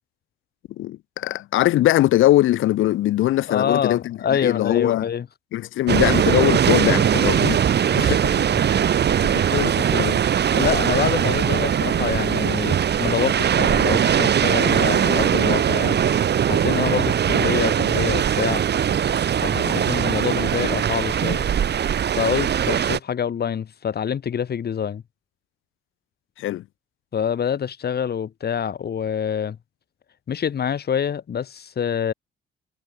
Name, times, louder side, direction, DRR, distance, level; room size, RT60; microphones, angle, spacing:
voice 1, 0.8-5.0 5.5-7.6 8.0-8.3 9.2-10.2 15.9-16.0 19.6-19.8 26.4-26.6, left 14 dB, 85° left, 4.6 m, -21 dB
voice 2, 3.5-5.3 7.9-8.2 8.7-9.4 10.5-16.0 16.5-18.6 19.4-21.5 22.1-25.0 27.1-29.6 30.3-32.1, left 8 dB, 55° left, 4.7 m, -26 dB
sound 1, 5.9-23.0, right 9 dB, 60° right, 4.3 m, -20 dB
cardioid pair, 90°, 20 cm